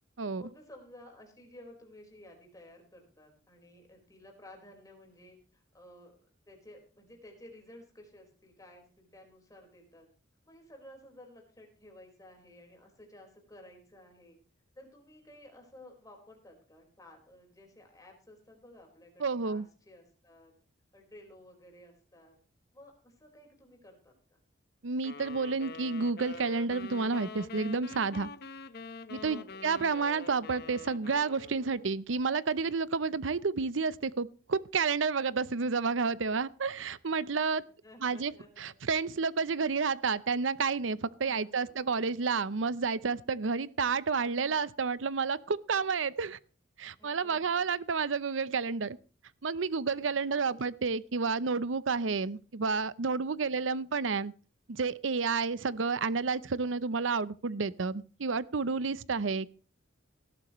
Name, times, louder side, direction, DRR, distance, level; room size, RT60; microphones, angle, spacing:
voice 1, 0.4-6.1 6.5-10.1 10.5-14.4 14.7-20.5 20.9-22.4 22.7-24.4 29.2-29.8 35.9-36.0 37.8-38.8 41.2-41.8 47.0-48.0 50.0-50.6 53.4-53.8, left 1 dB, 20° left, 4.7 m, -54 dB
voice 2, 19.2-19.7 24.8-28.3 29.1-37.6 38.0-38.3 38.6-46.4 46.8-49.0 49.4-54.3 54.7-59.5, right 4 dB, 90° right, 0.7 m, -30 dB
sound 1, 25.0-32.0, left 4 dB, 60° left, 1.0 m, -45 dB
18.5 x 12.5 x 3.1 m
head